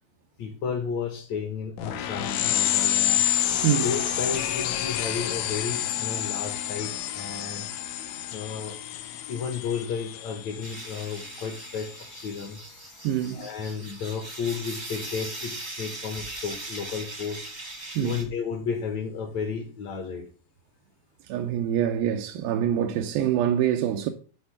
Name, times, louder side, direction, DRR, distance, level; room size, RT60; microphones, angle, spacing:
voice 1, 0.4-3.2 3.8-7.7 8.3-8.8 9.3-12.6 13.3-17.4 18.0-20.3, left 6 dB, 60° left, 2.2 m, -33 dB
sound 1, 1.8-11.9, left 12 dB, 80° left, 1.6 m, -29 dB
sound 2, 10.6-18.2, right 2 dB, 25° right, 0.9 m, -40 dB
voice 2, 13.0-13.4 18.0-18.2 21.3-24.1, right 10 dB, 90° right, 2.6 m, -25 dB
11.0 x 4.4 x 3.4 m
omnidirectional pair, 4.1 m